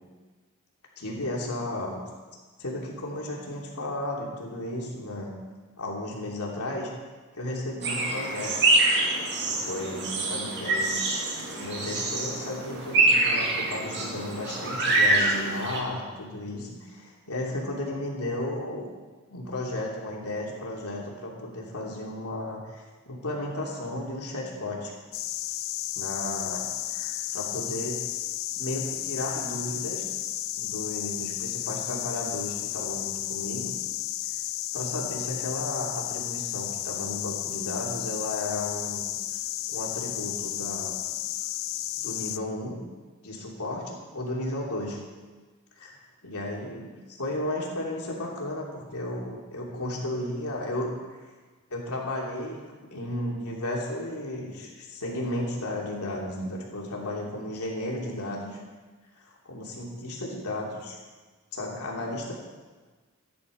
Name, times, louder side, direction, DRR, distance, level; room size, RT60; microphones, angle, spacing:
voice 1, 1.0-2.0 2.6-5.3 5.8-6.9 7.3-8.5 9.5-11.0 11.3-18.9 19.3-24.9 25.9-26.6 26.9-28.0 28.6-30.0 30.6-33.7 34.7-39.1 39.7-40.9 42.0-42.8 43.2-45.0 45.8-45.9 46.2-50.9 51.7-58.6 59.2-61.0 61.5-62.3, left 1 dB, 90° left, -2 dB, 3.0 m, -34 dB
sound 1, 7.8-15.8, right 2 dB, 55° right, 2.4 m, -25 dB
sound 2, 25.1-42.4, left 14 dB, 65° left, 0.5 m, -33 dB
14.5 x 10.0 x 5.1 m, 1.4 s
head